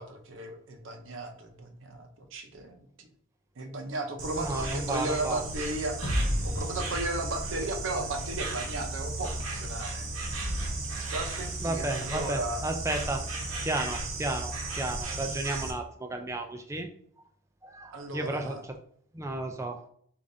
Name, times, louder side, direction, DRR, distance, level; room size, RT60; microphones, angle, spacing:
voice 1, 0.0-3.1 3.6-6.0 6.4-10.1 11.0-12.6 17.9-18.6, right 2 dB, 65° right, 5 dB, 0.7 m, -35 dB
Insect, 4.2-15.7, right 2 dB, 90° right, 1.0 m, -35 dB
voice 2, 4.4-5.4 11.6-13.2 13.6-16.9 17.6-18.8 19.1-19.8, right 2 dB, 15° right, 4 dB, 0.4 m, -33 dB
sound 1, 6.0-9.3, equal, 75° left, 0.9 m, -34 dB
6.5 x 2.5 x 2.7 m, 0.63 s
head